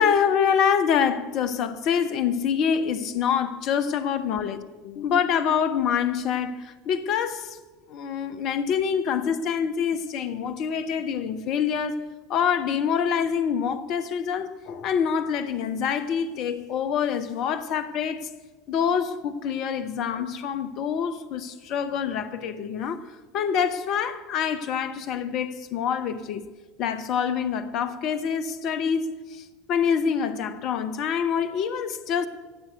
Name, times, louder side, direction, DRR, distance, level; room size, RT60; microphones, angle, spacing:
voice 1, 0.0-7.6 7.9-12.0 12.3-18.3 18.7-26.5 26.8-32.3, left 7 dB, 45° left, 0.9 m, -26 dB
15.5 x 7.5 x 9.3 m
figure-of-eight pair, 70°, 0 cm